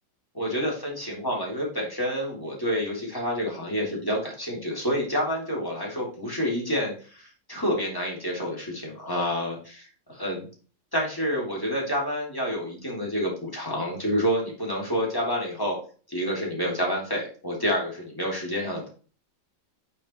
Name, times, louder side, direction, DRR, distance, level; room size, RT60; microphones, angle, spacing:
voice 1, 0.3-10.5 10.9-15.8 16.1-18.9, equal, 10° left, -3 dB, 2.9 m, -28 dB
8.9 x 5.9 x 3.1 m, 0.39 s
omnidirectional pair, 1.9 m